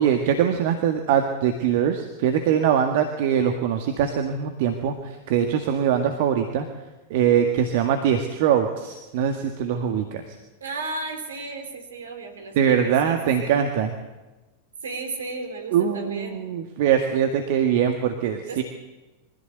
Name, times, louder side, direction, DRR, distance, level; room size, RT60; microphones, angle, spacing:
voice 1, 0.0-6.7 7.1-10.2 12.6-13.9 15.7-18.6, right 8 dB, 50° right, 5 dB, 1.8 m, -22 dB
voice 2, 10.6-13.5 14.8-16.4 18.5-18.6, right 3 dB, 65° right, 5 dB, 4.0 m, -34 dB
23.5 x 15.0 x 8.0 m, 1.1 s
figure-of-eight pair, 90°, 0 cm